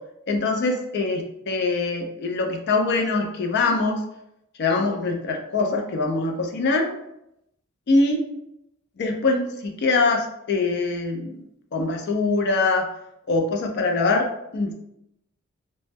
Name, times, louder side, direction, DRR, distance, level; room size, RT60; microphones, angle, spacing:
voice 1, 0.3-4.0 4.6-6.9 7.9-8.2 9.0-11.4 11.7-12.9 13.3-14.7, left 3 dB, 50° left, 3 dB, 0.4 m, -23 dB
2.1 x 2.0 x 3.3 m, 0.82 s
head